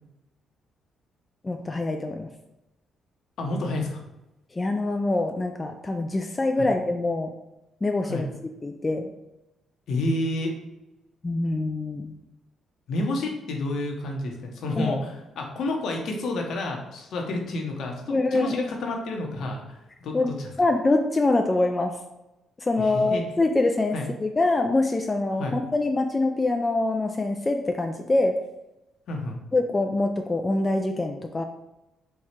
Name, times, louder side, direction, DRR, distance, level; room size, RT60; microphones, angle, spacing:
voice 1, 1.4-2.3 4.5-7.3 7.8-8.3 8.6-9.1 11.2-12.1 14.8-15.0 18.1-18.6 20.1-22.0 22.6-28.4 29.5-31.4, left 2 dB, 25° left, 4 dB, 0.4 m, -24 dB
voice 2, 3.4-4.0 6.6-6.7 8.0-8.3 9.9-10.5 12.9-20.5 22.8-23.2 23.9-24.0 25.4-25.6 29.1-29.4, left 2 dB, 70° left, 1 dB, 0.9 m, -30 dB
4.6 x 2.4 x 4.3 m, 0.94 s
cardioid pair, 90°, 0 cm